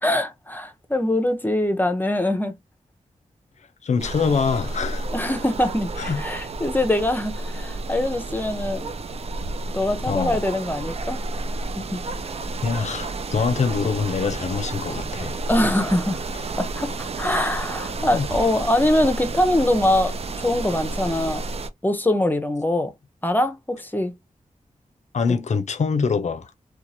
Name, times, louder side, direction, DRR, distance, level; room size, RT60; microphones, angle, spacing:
voice 1, 0.0-2.5 5.1-8.9 9.7-11.2 11.8-12.0 15.5-16.2 16.6-21.4 21.8-22.9 23.2-24.1, left 1 dB, 15° left, 0.6 m, -23 dB
voice 2, 3.8-5.1 6.0-6.2 10.1-10.4 12.6-15.4 16.3-16.4 18.1-18.3 25.1-26.5, left 5 dB, 60° left, 0.5 m, -24 dB
sound 1, 4.0-21.7, right 2 dB, 50° right, 0.4 m, -31 dB
2.9 x 2.3 x 2.6 m
wide cardioid pair, 75°, 14 cm